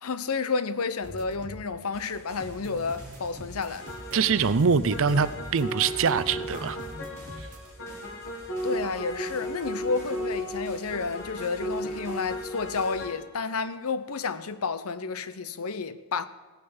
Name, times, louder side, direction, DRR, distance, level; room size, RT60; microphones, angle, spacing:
voice 1, 0.0-3.9 8.6-16.2, left 4 dB, 75° left, 0.7 m, -31 dB
sound 1, 1.0-1.7 1.9-7.7, right 1 dB, 35° right, 1.3 m, -44 dB
sound 2, 1.9-13.1, equal, 10° left, 3.5 m, -50 dB
sound 3, 3.8-13.2, equal, 55° left, 2.0 m, -35 dB
voice 2, 4.1-6.8, right 5 dB, 60° right, 0.5 m, -24 dB
17.5 x 6.6 x 7.1 m
head